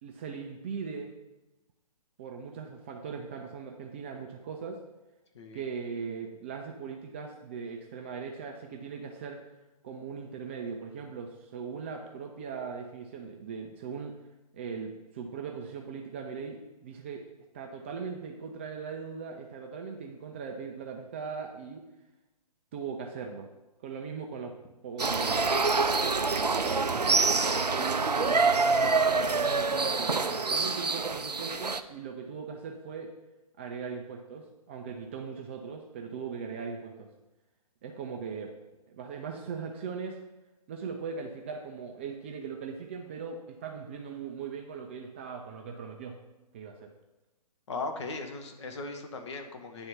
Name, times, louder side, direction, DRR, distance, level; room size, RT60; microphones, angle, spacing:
voice 1, 0.0-1.1 2.2-4.8 5.5-9.4 9.8-14.2 14.5-17.2 17.5-21.8 22.7-23.5 23.8-24.5 24.8-25.6 26.6-28.4 28.8-33.1 33.6-37.1 37.8-38.5 38.9-40.2 40.7-46.2 46.5-46.9, right 5 dB, 20° right, 2 dB, 0.4 m, -39 dB
sound 1, 25.0-31.8, right 4 dB, 90° right, 0.4 m, -26 dB
voice 2, 47.7-49.9, left 3 dB, 45° left, 4 dB, 0.9 m, -38 dB
9.1 x 3.5 x 5.5 m, 1.0 s
figure-of-eight pair, 125°, 20 cm